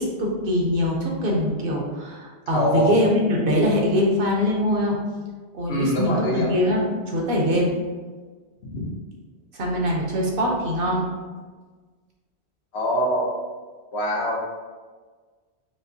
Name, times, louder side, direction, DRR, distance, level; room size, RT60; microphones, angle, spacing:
voice 1, 0.0-5.0 5.5-7.7 9.5-11.1, left 1 dB, 60° right, -1 dB, 0.8 m, -23 dB
voice 2, 2.5-2.9 5.7-6.5 8.7-8.9 12.7-13.3 13.9-14.4, equal, 75° left, -3 dB, 1.1 m, -23 dB
4.9 x 2.1 x 2.7 m, 1.4 s
omnidirectional pair, 1.1 m